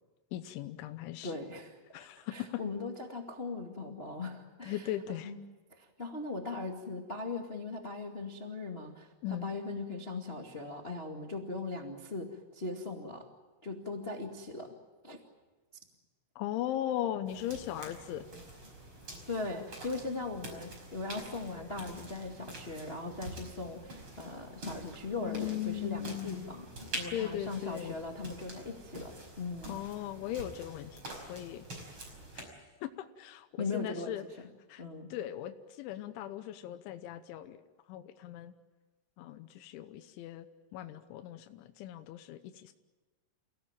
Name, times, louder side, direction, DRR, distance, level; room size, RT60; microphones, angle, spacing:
voice 1, 0.3-1.4 1.9-2.6 4.6-5.3 9.2-9.5 16.4-18.3 25.2-26.5 27.1-28.0 29.7-31.7 32.4-32.5 32.8-34.2 34.7-34.8 35.1-37.6 37.9-38.5 39.2-40.5 40.7-42.7, left 12 dB, 85° left, 8 dB, 3.4 m, -38 dB
voice 2, 1.2-1.8 2.3-4.9 5.2-5.4 5.7-13.3 13.6-14.7 15.0-15.2 19.3-26.7 26.9-29.8 33.6-34.2 34.8-35.1, left 3 dB, 40° left, 2 dB, 0.8 m, -39 dB
sound 1, 17.3-32.4, right 1 dB, 30° right, 5.8 m, -46 dB
30.0 x 18.0 x 9.0 m, 1.3 s
omnidirectional pair, 5.3 m